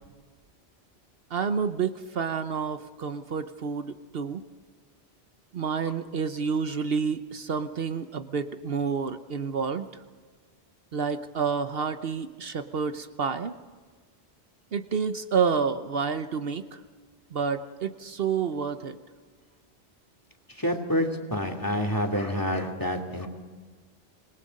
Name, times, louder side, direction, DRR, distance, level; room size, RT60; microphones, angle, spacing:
voice 1, 1.3-4.4 5.5-9.9 10.9-13.5 14.7-16.6 17.3-19.0, right 6 dB, 65° right, 9 dB, 1.1 m, -29 dB
voice 2, 20.5-23.3, equal, 20° left, 5 dB, 2.6 m, -28 dB
26.5 x 21.5 x 5.3 m, 1.5 s
omnidirectional pair, 1.1 m